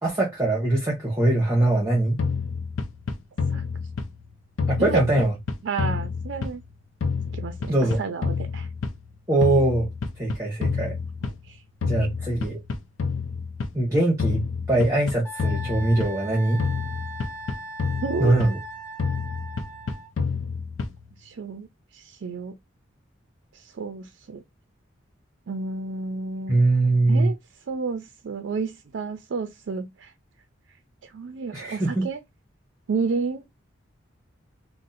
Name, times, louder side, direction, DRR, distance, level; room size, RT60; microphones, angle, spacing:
voice 1, 0.0-2.2 4.7-5.3 7.7-8.0 9.3-9.9 10.2-10.9 11.8-12.6 13.7-16.6 18.2-18.6 26.5-27.3 31.5-32.0, right 2 dB, 15° right, 0.9 m, -22 dB
sound 1, 2.2-4.3 4.6-6.7 7.0-9.1 9.4-11.5 11.8-13.8 14.2-16.3 16.6-18.7 19.0-21.1, left 5 dB, 85° left, 0.5 m, -29 dB
voice 2, 5.6-6.6 7.3-8.7 11.2-11.6 11.8-11.9 18.0-18.4 21.2-21.7 21.9-22.5 23.5-24.4 25.5-26.6 27.1-27.4 27.7-30.1 31.0-32.2 32.9-33.4, right 4 dB, 70° right, 0.4 m, -31 dB
Wind instrument woodwind instrument, 15.2-20.1, right 2 dB, 15° left, 0.6 m, -39 dB
2.6 x 2.0 x 3.9 m
head